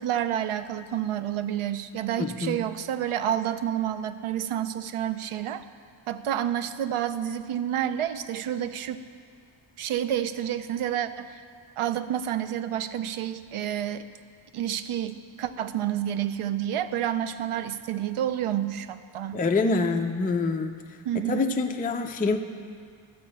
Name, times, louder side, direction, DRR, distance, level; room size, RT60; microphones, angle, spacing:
voice 1, 0.0-5.6 6.1-9.0 9.8-11.4 11.8-14.0 14.5-19.4 21.1-21.6, right 10 dB, 90° right, 12 dB, 0.6 m, -29 dB
voice 2, 2.2-2.6 19.3-20.7 21.1-22.4, left 3 dB, 20° left, 5 dB, 0.3 m, -26 dB
12.0 x 4.4 x 7.5 m, 2.2 s
wide cardioid pair, 130°, 49 cm